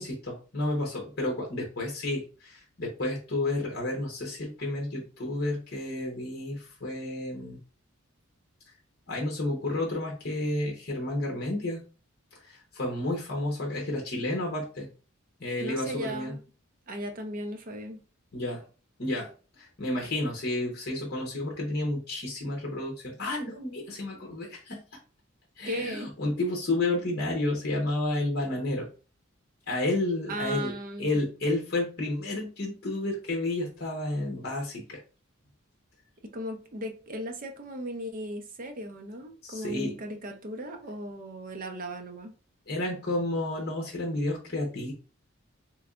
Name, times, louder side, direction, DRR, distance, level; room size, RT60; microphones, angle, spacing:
voice 1, 0.0-7.6 9.1-11.8 12.3-14.9 15.4-16.4 18.3-18.6 19.0-24.8 25.6-28.9 29.7-35.0 39.4-40.0 42.7-44.9, left 2 dB, 50° left, 0.9 m, -31 dB
voice 2, 15.6-16.4 16.9-18.0 25.7-26.1 30.3-31.2 36.3-42.3, equal, 40° right, 0.6 m, -36 dB
3.3 x 3.1 x 2.4 m
head